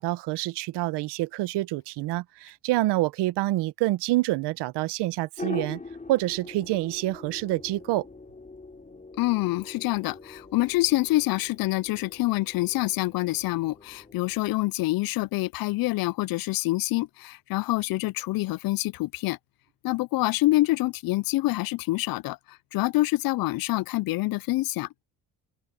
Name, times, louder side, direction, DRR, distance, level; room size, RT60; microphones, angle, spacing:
voice 1, 0.0-5.8 6.1-8.0, right 17 dB, 75° right, 1.1 m, -27 dB
sound 1, 5.4-14.4, left 3 dB, 20° left, 3.2 m, -43 dB
voice 2, 9.2-19.4 19.8-25.0, left 19 dB, 60° left, 0.5 m, -26 dB
open air
supercardioid pair, 75°, 41 cm